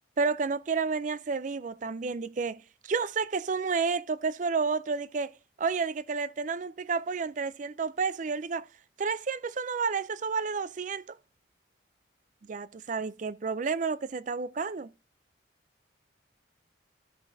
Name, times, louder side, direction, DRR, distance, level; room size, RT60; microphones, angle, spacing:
voice 1, 0.2-8.7 9.0-11.2 12.5-14.9, right 5 dB, 40° right, 0.4 m, -31 dB
13.0 x 6.5 x 2.6 m
head